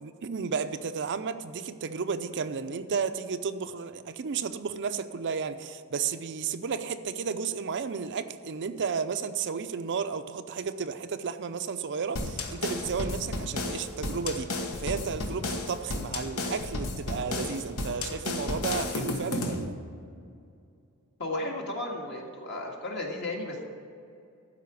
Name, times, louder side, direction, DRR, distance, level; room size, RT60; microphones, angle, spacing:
voice 1, 0.0-19.8, right 5 dB, 55° right, 10 dB, 0.5 m, -33 dB
sound 1, 12.1-19.7, left 2 dB, 80° left, 1.3 m, -33 dB
voice 2, 21.2-23.6, left 1 dB, 55° left, 0 dB, 1.9 m, -34 dB
12.5 x 4.9 x 8.3 m, 2.5 s
head